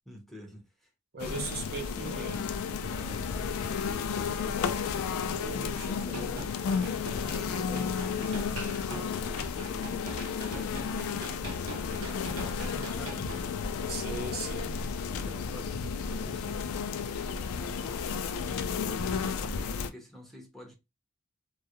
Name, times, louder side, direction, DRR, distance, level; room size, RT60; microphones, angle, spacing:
voice 1, 0.1-0.9 2.8-4.8 7.1-11.4 12.2-13.3 15.1-16.8 17.6-17.9 18.7-20.7, left 1 dB, ahead, 0.6 m, -47 dB
voice 2, 1.1-2.4 5.3-6.5 13.9-14.8, right 3 dB, 50° right, 0.6 m, -38 dB
sound 1, 1.2-19.9, left 6 dB, 80° left, 0.3 m, -33 dB
sound 2, 6.0-13.4, right 1 dB, 80° right, 0.9 m, -43 dB
2.2 x 2.0 x 2.8 m
head